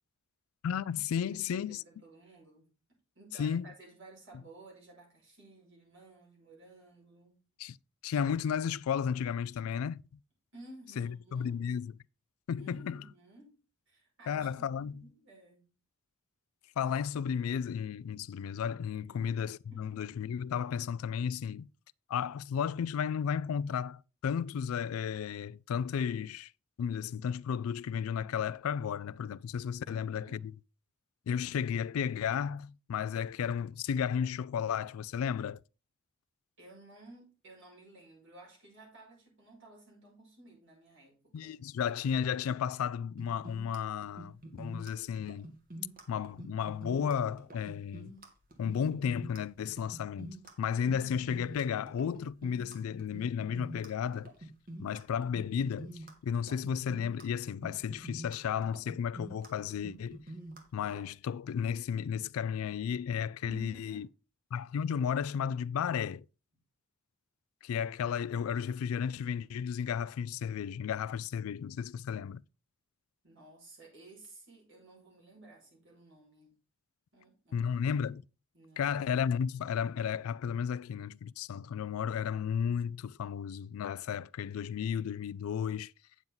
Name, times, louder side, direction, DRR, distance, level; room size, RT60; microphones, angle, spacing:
voice 1, 0.6-1.8 3.4-3.7 7.6-7.8 8.0-10.0 11.0-11.9 12.5-13.0 14.3-14.9 16.8-21.7 22.1-26.5 26.8-30.5 31.3-35.6 41.3-45.5 46.1-48.1 48.6-54.3 54.8-60.2 60.7-64.1 64.5-66.3 67.6-72.4 77.5-78.2 78.8-85.9, left 7 dB, 80° left, 0.3 m, -33 dB
voice 2, 1.2-2.7 3.2-7.4 10.5-11.6 12.6-13.6 13.9-14.5 14.9-15.7 19.1-19.9 29.8-30.4 36.6-41.6 50.8-51.4 63.4-64.1 73.2-76.6 77.1-77.8 78.5-79.0, right 2 dB, 60° right, 5.5 m, -55 dB
sound 1, 43.2-61.1, right 1 dB, 45° right, 2.1 m, -47 dB
9.2 x 7.2 x 3.9 m
head